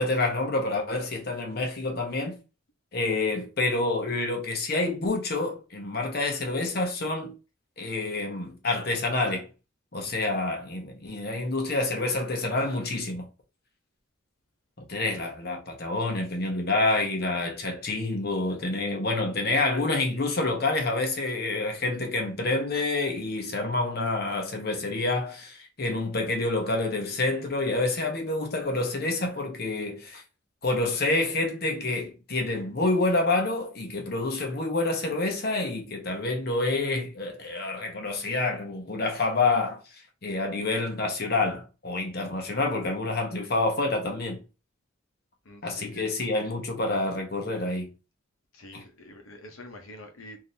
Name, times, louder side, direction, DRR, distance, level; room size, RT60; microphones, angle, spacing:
voice 1, 0.0-2.4 2.9-7.3 7.8-9.5 9.9-13.3 14.9-30.2 30.6-39.8 40.2-44.4 45.6-47.9 48.7-48.8, left 2 dB, 50° left, 0.9 m, -28 dB
voice 2, 45.4-46.0 48.5-50.4, left 1 dB, 90° left, 0.9 m, -46 dB
3.5 x 2.8 x 2.7 m
head